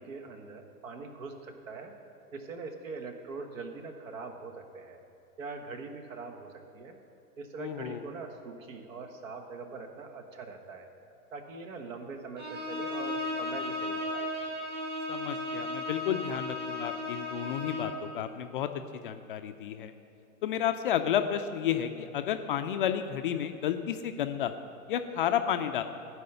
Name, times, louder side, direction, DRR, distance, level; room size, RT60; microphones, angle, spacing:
voice 1, 0.0-5.0 5.4-7.0 7.4-10.9 11.3-14.3, right 4 dB, 60° right, 6 dB, 1.4 m, -42 dB
voice 2, 7.6-8.0 15.1-18.7 19.0-19.9 20.4-24.5 24.9-25.8, left 9 dB, 40° left, 8 dB, 0.4 m, -31 dB
Bowed string instrument, 12.4-18.1, left 2 dB, 20° right, 1.7 m, -35 dB
14.0 x 4.7 x 6.7 m, 2.9 s
figure-of-eight pair, 110°, 44 cm